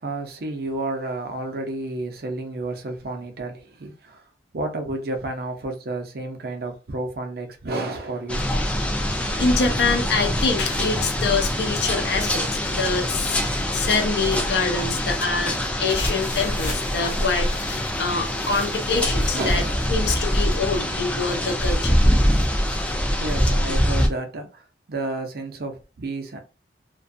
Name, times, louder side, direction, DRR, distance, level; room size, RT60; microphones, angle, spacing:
voice 1, 0.0-4.2 4.5-8.5 19.3-19.9 23.2-26.4, right 2 dB, 60° right, 0.6 m, -31 dB
sound 1, 8.3-24.1, equal, 5° left, 0.3 m, -24 dB
voice 2, 9.0-13.4 13.7-19.6 19.9-22.0, left 4 dB, 70° left, 0.6 m, -25 dB
sound 2, 15.8-20.3, equal, 45° left, 1.0 m, -32 dB
2.5 x 2.3 x 2.5 m
head